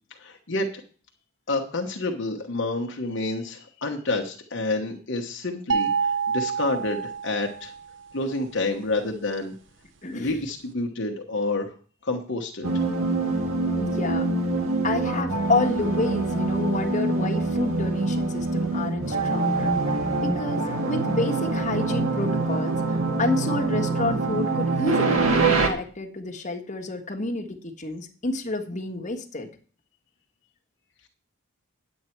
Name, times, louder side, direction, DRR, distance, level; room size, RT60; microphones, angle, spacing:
voice 1, 0.2-0.7 1.5-7.7 8.1-9.5 10.1-11.7 12.0-12.7, left 2 dB, 55° left, 2 dB, 1.2 m, -29 dB
sound 1, 5.7-7.9, right 6 dB, 60° right, 0.9 m, -27 dB
voice 2, 10.0-10.4 13.8-14.3 14.8-19.7 20.2-29.5, left 2 dB, 35° left, 2 dB, 1.5 m, -29 dB
sound 2, 12.6-25.7, right 3 dB, 80° right, 1.9 m, -25 dB
9.7 x 8.5 x 4.5 m, 0.41 s
head